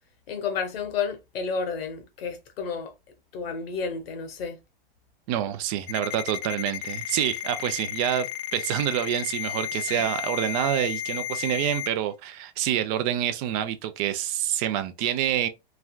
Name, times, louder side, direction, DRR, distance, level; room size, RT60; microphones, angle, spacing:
voice 1, 0.3-2.9 3.3-4.6 9.9-10.1, left 5 dB, 75° left, 1.0 m, -31 dB
voice 2, 5.3-8.3 8.5-15.5, right 11 dB, 35° right, 0.4 m, -27 dB
Ringtone, 5.9-11.9, left 11 dB, 35° left, 0.4 m, -33 dB
3.2 x 2.3 x 2.3 m
hypercardioid pair, 130°, 30 cm